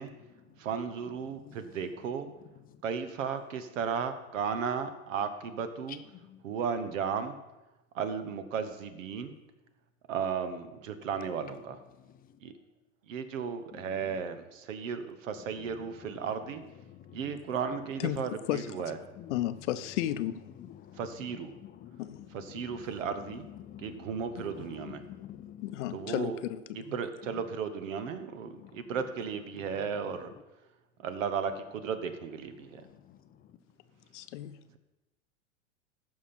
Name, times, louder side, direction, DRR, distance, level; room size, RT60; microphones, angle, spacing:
voice 1, 0.0-0.5 1.2-1.7 2.6-2.8 5.9-6.4 11.9-12.4 13.7-14.2 15.4-17.6 19.0-19.7 20.5-26.1 27.2-27.4 28.5-29.0 29.5-30.3 32.6-33.6, left 11 dB, 25° left, 0.4 m, -50 dB
voice 2, 0.6-2.3 2.8-6.0 6.4-7.4 7.9-9.4 10.1-11.8 12.4-12.5 13.1-16.6 17.1-19.0 21.0-21.5 22.3-23.5 23.8-25.0 25.9-26.4 26.7-30.3 31.0-32.8, right 6 dB, 70° right, 1.2 m, -35 dB
voice 3, 18.0-18.7 19.3-20.4 22.0-22.3 24.4-24.5 25.6-27.0 34.1-34.6, left 13 dB, 65° left, 0.7 m, -33 dB
14.5 x 5.8 x 4.3 m
hypercardioid pair, 100°, 39 cm